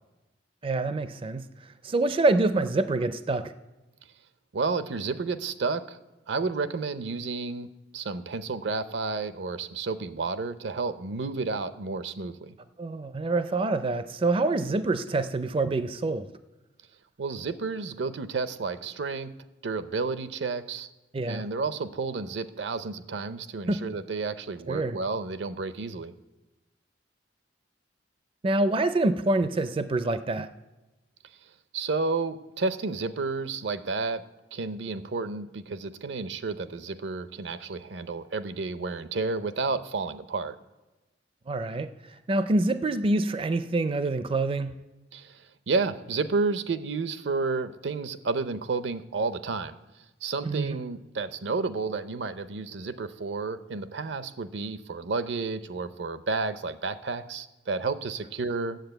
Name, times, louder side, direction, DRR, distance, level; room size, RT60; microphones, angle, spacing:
voice 1, 0.6-3.5 12.8-16.3 21.1-21.5 23.7-23.8 24.7-25.0 28.4-30.5 41.5-44.7 50.4-50.8, right 2 dB, 30° right, 12 dB, 0.4 m, -26 dB
voice 2, 4.5-6.0 6.3-7.7 7.9-12.5 17.2-19.3 19.6-20.9 21.3-26.1 31.7-34.2 34.5-40.6 45.1-49.7 50.2-58.8, right 4 dB, 75° right, 13 dB, 0.6 m, -31 dB
9.1 x 7.6 x 7.9 m, 1.1 s
head